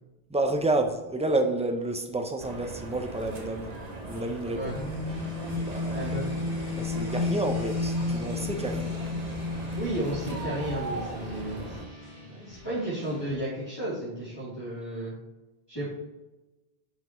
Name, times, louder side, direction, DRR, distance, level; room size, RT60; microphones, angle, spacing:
voice 1, 0.3-3.7 4.1-4.6 5.7-6.0 6.7-9.0, right 2 dB, 10° right, 5 dB, 0.5 m, -29 dB
sound 1, 2.4-11.9, right 2 dB, 40° right, 1.2 m, -39 dB
sound 2, 4.6-11.3, left 3 dB, 75° left, 2.2 m, -32 dB
sound 3, 5.1-13.4, left 1 dB, 60° right, 2.7 m, -47 dB
voice 2, 5.9-6.2 9.8-11.8 12.3-15.1 15.7-15.8, right 1 dB, 25° left, -13 dB, 3.1 m, -33 dB
10.5 x 5.8 x 3.1 m, 1.1 s
omnidirectional pair, 1.0 m